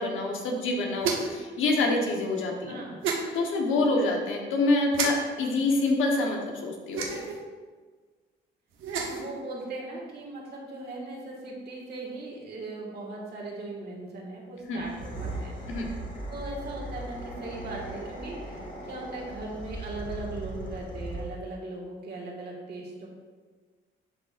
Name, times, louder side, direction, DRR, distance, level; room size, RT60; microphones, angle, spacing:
voice 1, 0.0-2.8 3.3-7.2 14.7-14.8 15.7-15.9, left 2 dB, 80° left, 1 dB, 1.1 m, -26 dB
sound 1, 1.0-1.4 3.0-3.2 4.9-5.1 6.9-7.4 8.7-9.3, right 5 dB, 80° right, 1.0 m, -29 dB
voice 2, 2.7-3.0 9.0-15.6 16.3-23.1, right 2 dB, 55° right, -2 dB, 1.8 m, -39 dB
sound 2, 14.7-21.5, right 1 dB, 40° left, 1.6 m, -38 dB
11.0 x 3.9 x 2.5 m, 1.5 s
cardioid pair, 90°, 20 cm